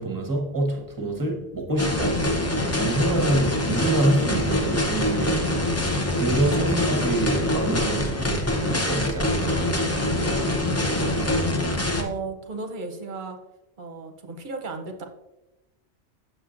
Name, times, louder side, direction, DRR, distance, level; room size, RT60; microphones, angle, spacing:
voice 1, 0.0-2.2 2.8-5.8 6.1-9.7, right 2 dB, 20° right, 0.9 m, -27 dB
sound 1, 1.8-12.0, left 1 dB, 20° left, 0.5 m, -24 dB
voice 2, 12.0-13.4 13.8-15.1, right 4 dB, 50° right, 0.8 m, -34 dB
7.2 x 6.7 x 2.5 m
omnidirectional pair, 1.1 m